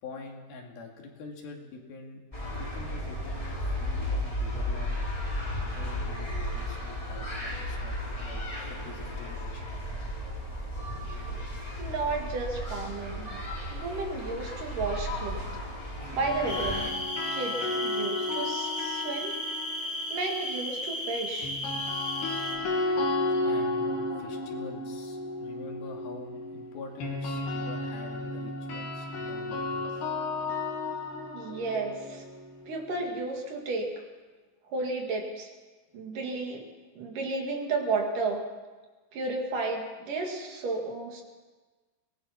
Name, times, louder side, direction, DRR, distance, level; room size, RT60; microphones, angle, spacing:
voice 1, 0.0-5.1 5.7-8.4 8.7-9.7 23.4-30.1, left 3 dB, 70° left, 1 dB, 4.1 m, -45 dB
sound 1, 2.3-16.9, left 1 dB, 10° left, 3.3 m, -34 dB
voice 2, 11.5-13.3 13.7-15.4 16.1-16.9 17.3-19.4 20.1-21.5 31.3-32.2 32.7-33.9 34.7-35.5 35.9-36.7 37.0-38.4 39.1-41.2, right 3 dB, 60° right, 2 dB, 3.5 m, -33 dB
sound 2, 16.0-20.2 21.4-33.3, left 2 dB, 85° left, 5.2 m, -33 dB
sound 3, 16.5-22.6, equal, 20° right, 4.0 m, -35 dB
24.0 x 19.0 x 5.9 m, 1.3 s
omnidirectional pair, 4.5 m